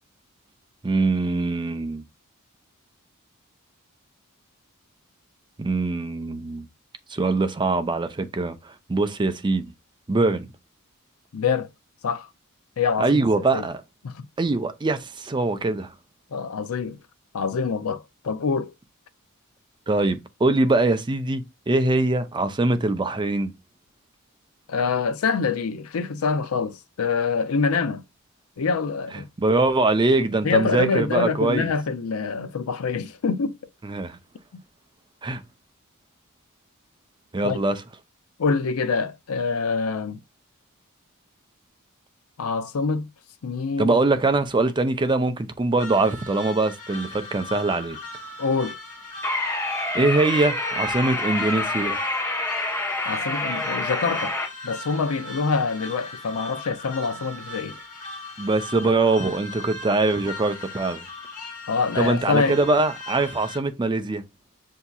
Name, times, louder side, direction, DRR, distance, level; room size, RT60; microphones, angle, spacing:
voice 1, 0.8-2.0 5.6-6.7 7.1-9.7 10.1-10.5 13.0-13.8 14.4-15.9 19.9-23.5 29.4-31.7 33.8-34.2 35.2-35.4 37.3-37.8 43.8-48.0 49.9-52.0 58.4-61.1 62.0-64.2, right 2 dB, 20° right, 0.5 m, -23 dB
voice 2, 11.3-11.7 12.0-12.3 12.8-13.1 13.5-13.7 14.0-14.2 16.3-17.0 17.3-18.7 24.7-28.0 28.6-29.3 30.4-33.6 37.4-37.6 38.4-40.2 42.4-43.1 43.4-43.9 48.4-48.8 53.1-54.3 54.6-57.8 61.7-62.6, left 5 dB, 70° left, 0.5 m, -25 dB
sound 1, 45.8-63.6, left 2 dB, 40° left, 1.5 m, -39 dB
sound 2, 49.2-54.5, left 2 dB, 10° left, 0.9 m, -27 dB
6.9 x 2.7 x 2.3 m
head